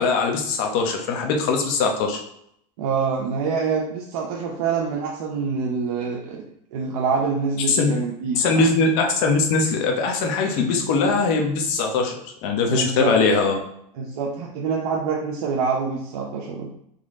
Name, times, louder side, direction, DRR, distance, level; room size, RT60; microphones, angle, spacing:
voice 1, 0.0-2.2 7.7-7.9 8.3-13.6, left 4 dB, 60° left, 2 dB, 1.0 m, -21 dB
voice 2, 2.8-8.7 12.6-13.1 13.9-16.7, right 5 dB, 75° right, -1 dB, 0.7 m, -26 dB
4.1 x 3.1 x 3.6 m, 0.73 s
supercardioid pair, 140°, 19 cm